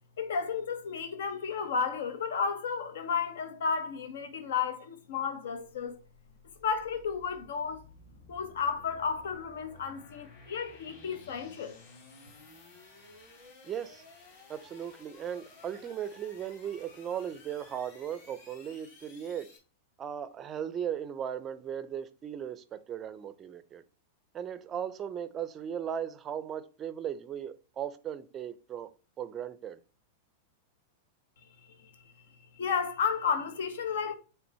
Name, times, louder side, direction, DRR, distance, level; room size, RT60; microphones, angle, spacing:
voice 1, 0.2-6.0 6.6-7.8 8.3-11.8 31.6-32.0 32.5-34.1, left 6 dB, 80° left, 1.1 m, -32 dB
sound 1, 6.1-19.6, left 3 dB, 35° left, 2.7 m, -55 dB
voice 2, 13.6-14.0 14.5-19.5 20.0-23.8 24.3-28.9 29.2-29.8, right 9 dB, 15° right, 0.4 m, -37 dB
7.1 x 3.3 x 4.2 m
supercardioid pair, 175°, 0 cm